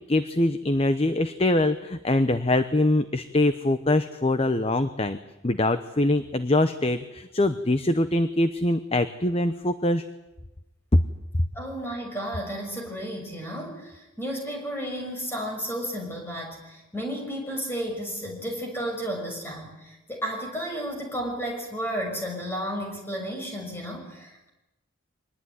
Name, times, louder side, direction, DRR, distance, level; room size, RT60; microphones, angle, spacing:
voice 1, 0.1-5.2 5.4-10.0 10.9-11.0 11.3-11.4, left 1 dB, 30° left, 11 dB, 0.8 m, -23 dB
voice 2, 11.5-24.5, equal, 10° left, 1 dB, 6.2 m, -33 dB
24.5 x 20.0 x 9.6 m, 0.98 s
head